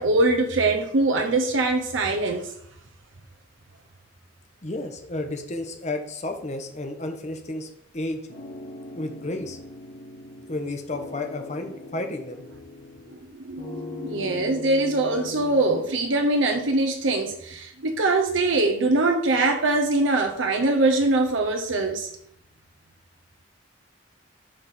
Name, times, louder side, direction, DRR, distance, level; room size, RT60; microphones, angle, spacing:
voice 1, 0.0-2.5 13.3-22.1, right 2 dB, 90° right, 0.8 m, -23 dB
voice 2, 4.6-8.2 8.9-9.6 10.5-12.4, left 2 dB, 35° left, 1.0 m, -32 dB
sound 1, 8.3-10.6 10.9-13.3 13.6-15.6, left 2 dB, 70° left, 1.7 m, -40 dB
7.7 x 4.9 x 4.2 m
head